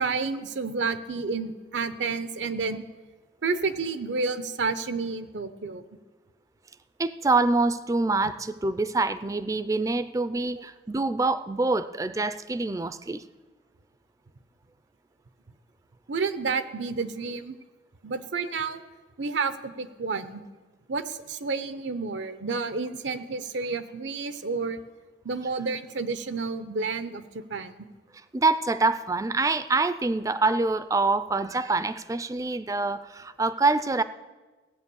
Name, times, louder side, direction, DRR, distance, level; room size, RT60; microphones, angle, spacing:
voice 1, 0.0-2.8 3.4-5.8 16.1-17.6 18.0-18.8 19.2-20.4 20.9-24.8 25.2-27.7, right 4 dB, 85° right, 11 dB, 0.7 m, -30 dB
voice 2, 7.0-13.2 28.3-34.0, right 3 dB, 20° right, 13 dB, 0.4 m, -25 dB
16.5 x 8.7 x 7.0 m, 1.3 s
head